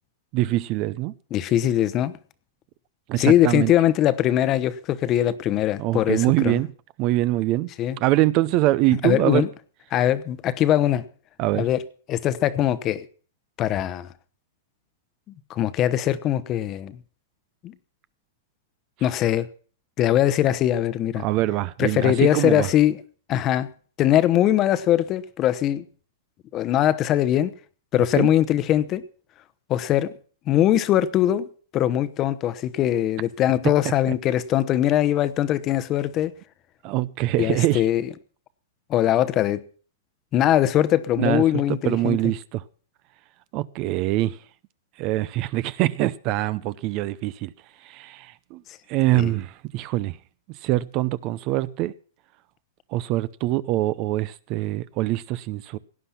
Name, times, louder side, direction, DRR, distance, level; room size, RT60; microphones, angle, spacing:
voice 1, 0.3-1.1 3.1-3.7 5.8-6.7 7.0-7.7 8.0-9.4 11.4-11.7 21.2-22.7 28.2-28.3 36.8-37.8 41.2-42.6 43.5-44.4 45.0-47.5 47.8-48.6 48.9-50.2 50.6-51.9 52.9-55.8, right 16 dB, 40° right, 0.6 m, -24 dB
voice 2, 1.3-2.1 3.2-6.6 7.8-8.0 9.0-9.5 9.9-11.1 11.5-11.8 12.1-13.1 13.6-14.1 15.5-17.0 17.6-17.7 19.0-19.5 20.0-21.2 21.8-23.0 23.3-23.7 24.0-25.8 26.5-27.5 27.9-29.0 29.7-30.1 30.5-31.5 31.7-36.3 37.4-38.1 38.9-39.6 40.3-42.3 49.1-49.3, left 12 dB, 30° left, 0.9 m, -21 dB
17.5 x 9.9 x 5.8 m
hypercardioid pair, 145°, 0 cm